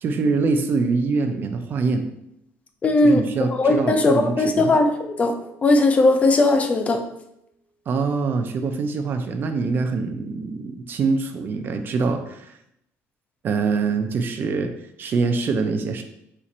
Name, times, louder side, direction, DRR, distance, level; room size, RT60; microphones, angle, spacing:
voice 1, 0.0-2.1 3.0-4.7 7.9-12.6 13.4-14.7 15.0-16.0, right 4 dB, 40° right, 7 dB, 0.4 m, -24 dB
voice 2, 2.8-5.3 5.6-7.0, left 2 dB, 25° left, 6 dB, 0.4 m, -18 dB
Keyboard (musical), 3.7-6.6, right 1 dB, 5° right, 1.0 m, -41 dB
4.3 x 2.5 x 4.1 m, 0.78 s
cardioid pair, 155°, 5 cm